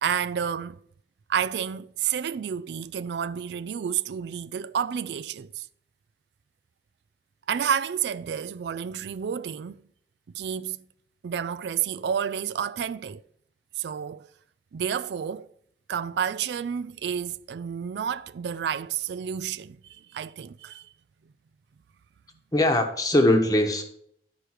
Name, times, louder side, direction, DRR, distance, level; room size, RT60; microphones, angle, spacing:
voice 1, 0.0-0.8 1.3-5.7 7.5-9.8 10.3-10.9 11.2-13.2 13.8-14.3 14.7-15.5 15.9-20.8, right 8 dB, 80° right, 0.3 m, -30 dB
voice 2, 22.5-23.8, left 1 dB, 20° left, 1.0 m, -21 dB
11.5 x 5.0 x 4.6 m
head